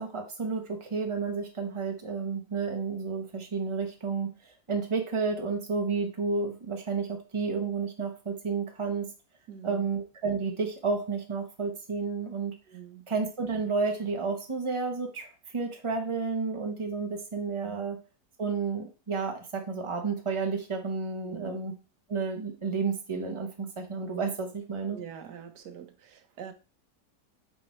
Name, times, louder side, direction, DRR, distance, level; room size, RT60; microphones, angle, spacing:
voice 1, 0.0-9.1 9.6-12.5 13.1-15.3 15.5-18.0 18.4-21.7 22.1-25.0, right 4 dB, 20° right, 1.2 m, -31 dB
voice 2, 9.5-9.9 12.6-13.1 17.6-17.9 21.2-21.6 24.9-26.5, right 8 dB, 75° right, 1.5 m, -45 dB
7.5 x 4.2 x 4.5 m
omnidirectional pair, 1.8 m